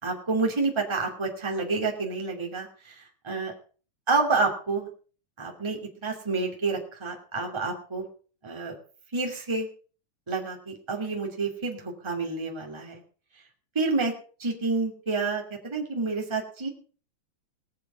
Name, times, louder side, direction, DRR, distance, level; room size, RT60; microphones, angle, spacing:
voice 1, 0.0-3.5 4.1-4.9 5.4-8.1 8.4-8.8 9.1-9.7 10.3-13.0 13.7-14.1 14.4-16.7, right 3 dB, 10° right, 0 dB, 2.4 m, -29 dB
20.5 x 7.0 x 5.8 m, 0.40 s
omnidirectional pair, 3.6 m